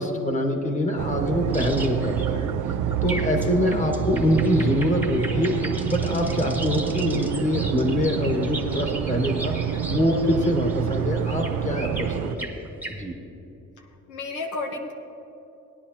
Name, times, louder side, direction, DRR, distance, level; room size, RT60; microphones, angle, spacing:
voice 1, 0.0-2.5 3.0-9.5 9.9-12.5 12.9-13.1, left 1 dB, 25° left, 3 dB, 1.6 m, -24 dB
sound 1, 1.0-12.4, right 9 dB, 75° right, 0.5 m, -27 dB
sound 2, 1.5-13.0, right 2 dB, 5° right, 1.1 m, -38 dB
voice 2, 3.0-3.3 3.6-3.9 6.4-6.6 13.8-14.9, left 3 dB, 85° left, 3 dB, 1.1 m, -34 dB
20.0 x 10.0 x 2.8 m, 2.9 s
cardioid pair, 90°, 30 cm